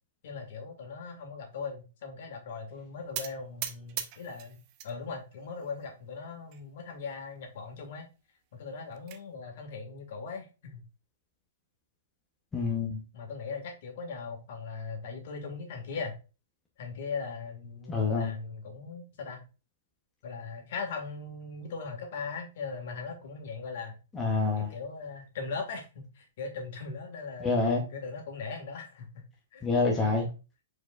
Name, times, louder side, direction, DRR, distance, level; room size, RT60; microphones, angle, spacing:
voice 1, 0.2-4.6 4.8-8.1 8.5-10.8 13.1-16.2 16.8-19.4 20.2-24.0 24.6-27.6 27.9-29.2 29.5-29.7 30.0-30.1, left 4 dB, 55° left, 1.8 m, -39 dB
sound 1, 3.1-4.9 5.3-5.9 6.5-6.6 6.9-7.0 7.4-7.5 8.6-9.2, right 11 dB, 35° right, 0.5 m, -40 dB
voice 2, 12.5-13.0 17.9-18.3 24.1-24.7 27.4-27.8 29.6-30.3, left 4 dB, 10° left, 0.8 m, -27 dB
4.6 x 4.5 x 2.4 m
hypercardioid pair, 160°, 0 cm